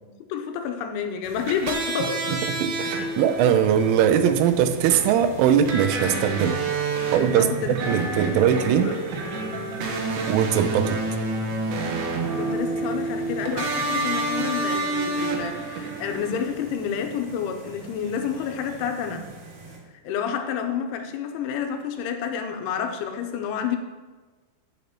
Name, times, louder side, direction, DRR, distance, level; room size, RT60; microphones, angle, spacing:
voice 1, 0.0-2.4 7.3-8.9 12.4-19.2 20.0-23.8, left 7 dB, 85° left, 5 dB, 3.2 m, -29 dB
sound 1, 1.2-16.5, right 3 dB, 70° right, 2.5 m, -29 dB
sound 2, 2.0-19.8, right 3 dB, 50° right, 1.9 m, -44 dB
voice 2, 2.3-6.6 7.1-9.0 10.3-11.0, right 9 dB, 85° right, 9 dB, 3.2 m, -21 dB
13.0 x 8.1 x 2.9 m, 1.3 s
omnidirectional pair, 5.6 m